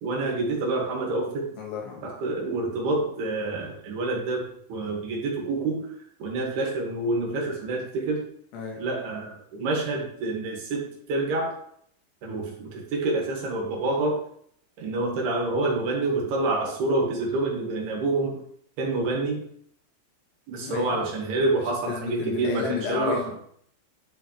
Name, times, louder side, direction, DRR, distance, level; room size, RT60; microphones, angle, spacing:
voice 1, 0.0-1.5 2.0-4.4 4.7-5.9 6.2-8.2 8.8-11.6 12.2-14.2 14.8-18.4 18.8-19.4 20.5-23.2, right 2 dB, 65° right, -1 dB, 3.9 m, -27 dB
voice 2, 1.6-2.0 8.5-8.9 20.6-21.1 21.9-23.4, left 6 dB, 75° left, 0 dB, 3.6 m, -32 dB
11.5 x 6.2 x 3.2 m, 0.64 s
omnidirectional pair, 5.1 m